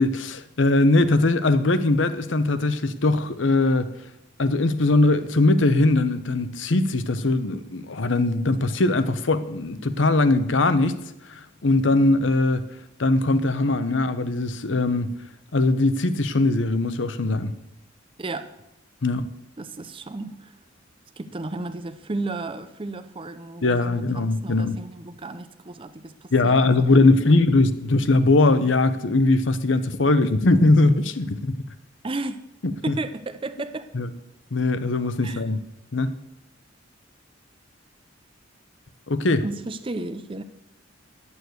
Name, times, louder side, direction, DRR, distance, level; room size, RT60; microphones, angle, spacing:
voice 1, 0.0-3.9 4.4-11.0 11.3-12.6 13.0-15.1 15.5-17.5 19.0-19.3 23.6-24.8 26.3-31.6 32.9-33.0 33.9-34.1 34.5-35.6 35.9-36.1 39.1-39.4, left 2 dB, 70° left, 11 dB, 0.8 m, -20 dB
voice 2, 18.2-18.5 19.6-20.6 21.2-27.4 32.0-32.4 32.8-33.9 35.2-35.4 39.4-40.4, right 2 dB, 25° right, 11 dB, 0.6 m, -33 dB
11.0 x 7.1 x 7.9 m, 0.86 s
head